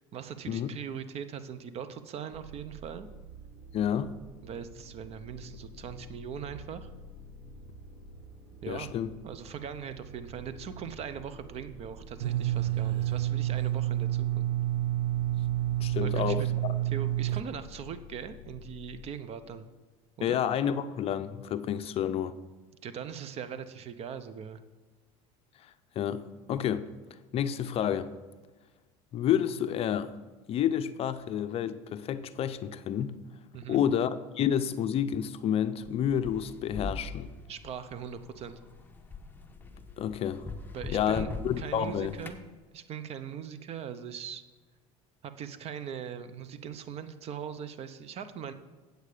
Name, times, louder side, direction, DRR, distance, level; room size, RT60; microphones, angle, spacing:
voice 1, 0.0-3.1 4.4-6.9 8.6-8.9 9.2-14.5 16.0-16.5 16.8-19.7 20.2-20.4 22.8-24.6 33.5-33.8 37.5-38.6 40.7-41.3 41.6-42.4 42.7-44.4 45.2-48.5, right 8 dB, 45° right, 0.7 m, -40 dB
sound 1, 2.3-19.0, right 2 dB, 70° right, 2.5 m, -49 dB
voice 2, 3.7-4.1 8.7-9.1 15.8-16.5 20.2-22.4 26.0-26.2 26.5-26.9 27.3-28.1 29.1-30.1 30.5-33.2 33.7-37.3 40.0-40.4 40.9-42.2, left 9 dB, 40° left, 0.5 m, -29 dB
sound 2, 12.2-17.4, right 13 dB, 90° right, 0.4 m, -29 dB
sound 3, 35.8-42.4, left 3 dB, 15° left, 0.9 m, -42 dB
8.4 x 8.0 x 5.0 m
supercardioid pair, 110°, 15 cm